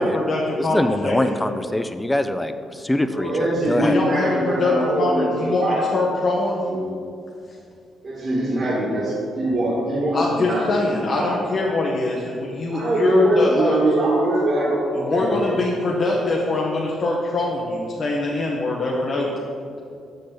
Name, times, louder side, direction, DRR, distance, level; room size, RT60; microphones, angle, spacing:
voice 1, 0.0-1.2 3.6-6.6 10.1-13.8 15.0-19.4, left 2 dB, 55° left, -3 dB, 0.9 m, -23 dB
voice 2, 0.6-4.0, left 1 dB, 15° left, 10 dB, 0.5 m, -23 dB
voice 3, 3.1-5.8 6.7-6.8 8.0-11.4 12.7-15.5, right 1 dB, 50° right, -6 dB, 1.7 m, -22 dB
6.6 x 6.3 x 3.9 m, 2.4 s
supercardioid pair, 60°, 0 cm